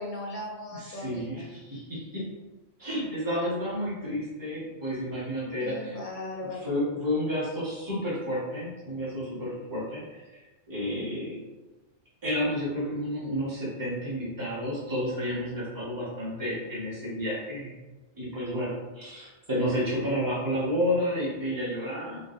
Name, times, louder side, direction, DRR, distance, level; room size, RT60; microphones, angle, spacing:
voice 1, 0.0-1.4 5.6-6.7, left 2 dB, 45° left, -3 dB, 0.8 m, -38 dB
voice 2, 0.8-2.2 2.8-6.0 6.4-10.2 10.7-11.4 12.2-17.7 18.1-22.2, equal, 15° right, -8 dB, 1.3 m, -31 dB
3.9 x 3.1 x 2.6 m, 1.2 s
omnidirectional pair, 1.4 m